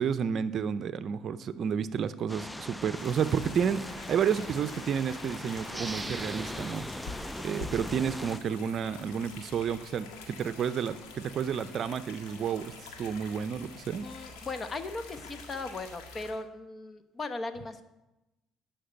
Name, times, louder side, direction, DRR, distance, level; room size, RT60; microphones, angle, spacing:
voice 1, 0.0-6.8 7.4-12.7 13.0-14.1, right 7 dB, 55° right, 13 dB, 0.5 m, -31 dB
sound 1, 2.3-8.4, left 1 dB, 10° left, 0.3 m, -40 dB
sound 2, 2.9-16.3, left 4 dB, 90° left, 1.6 m, -47 dB
sound 3, 5.7-8.9, right 2 dB, 10° right, 0.7 m, -44 dB
voice 2, 14.0-17.8, left 3 dB, 35° left, 10 dB, 1.0 m, -38 dB
9.9 x 5.9 x 7.9 m, 0.98 s
supercardioid pair, 80°, 0 cm